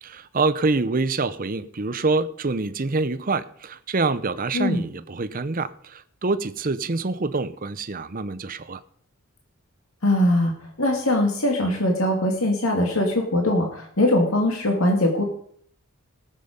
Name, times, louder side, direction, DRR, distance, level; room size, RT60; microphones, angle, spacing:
voice 1, 0.0-8.8, right 3 dB, 40° right, 0.7 m, -26 dB
voice 2, 4.5-4.8 10.0-10.5 10.8-15.2, left 1 dB, 70° left, 2.4 m, -21 dB
19.0 x 7.5 x 5.2 m
head